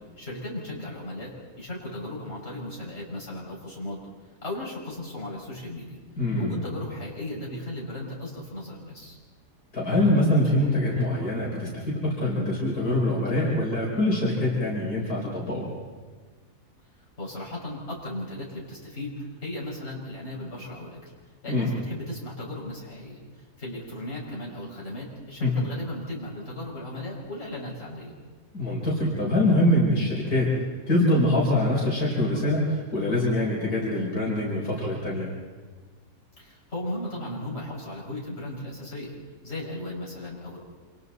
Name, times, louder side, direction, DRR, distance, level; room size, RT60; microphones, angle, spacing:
voice 1, 0.2-4.0 4.4-6.0 6.4-9.2 17.2-21.1 21.4-23.2 23.6-28.1 36.4-39.1 39.4-40.6, left 1 dB, 40° left, -5 dB, 6.5 m, -36 dB
voice 2, 6.2-6.6 9.7-15.6 21.5-21.7 25.4-25.5 28.5-30.5 30.9-35.3, left 1 dB, 65° left, -4 dB, 4.6 m, -24 dB
28.5 x 27.0 x 4.1 m, 1.4 s
omnidirectional pair, 1.7 m